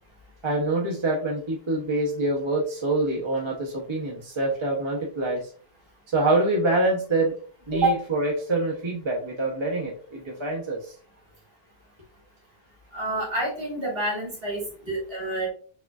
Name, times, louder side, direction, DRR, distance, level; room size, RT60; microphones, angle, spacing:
voice 1, 0.4-5.5 6.1-7.3 7.7-10.9 14.9-15.0, right 2 dB, 30° right, -2 dB, 0.8 m, -25 dB
voice 2, 12.9-14.6 14.9-15.5, right 1 dB, 55° right, -4 dB, 1.9 m, -27 dB
6.5 x 2.5 x 2.3 m, 0.42 s
omnidirectional pair, 1.2 m